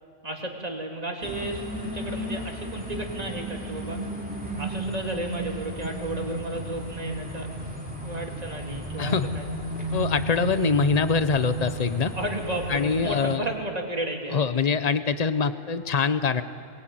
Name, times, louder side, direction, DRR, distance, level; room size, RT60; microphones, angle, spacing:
voice 1, 0.2-4.0 4.6-7.5 8.0-9.5 12.1-14.4, right 1 dB, 30° right, 1 dB, 2.8 m, -33 dB
sound 1, 1.2-13.4, right 1 dB, 5° right, 3.2 m, -34 dB
voice 2, 9.9-12.1 12.7-13.4 14.3-16.4, left 5 dB, 35° left, 12 dB, 0.9 m, -24 dB
23.5 x 21.5 x 9.2 m, 2.4 s
omnidirectional pair, 1.4 m